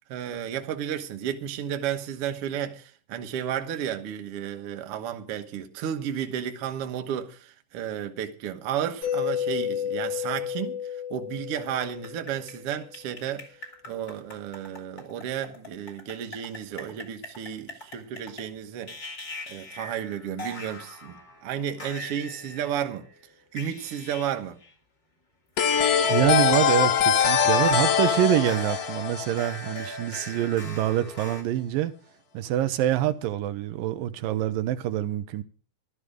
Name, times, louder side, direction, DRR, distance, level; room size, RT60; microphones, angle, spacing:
voice 1, 0.1-13.5 13.9-19.0 19.5-23.1 23.5-24.6, right 9 dB, 60° right, 1.7 m, -33 dB
Mallet percussion, 9.0-12.8, left 9 dB, 75° left, 8.5 m, -31 dB
sound 1, 11.6-18.5 18.9-24.3 24.6-24.7 25.6-31.4, left 1 dB, 30° left, 2.6 m, -42 dB
sound 2, 25.6-30.2, left 7 dB, 60° left, 2.0 m, -23 dB
voice 2, 26.1-31.9 32.3-35.4, right 12 dB, 85° right, 2.5 m, -25 dB
13.0 x 12.5 x 5.0 m
omnidirectional pair, 3.9 m